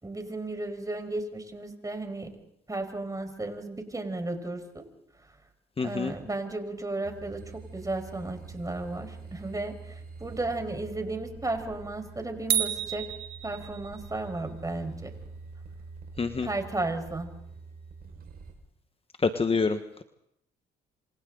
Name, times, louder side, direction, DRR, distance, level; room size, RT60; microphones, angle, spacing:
voice 1, 0.0-2.3 2.7-4.8 5.8-7.4 7.7-13.1 13.4-15.1 16.4-17.4, right 2 dB, 20° right, 7 dB, 5.2 m, -34 dB
voice 2, 5.8-6.1 16.2-16.5 19.2-20.0, left 4 dB, 30° left, 8 dB, 1.4 m, -27 dB
sound 1, 7.0-18.5, right 4 dB, 55° right, 5.8 m, -45 dB
sound 2, 12.5-14.1, right 11 dB, 80° right, 1.8 m, -30 dB
27.5 x 27.0 x 4.0 m, 0.73 s
supercardioid pair, 60°, 19 cm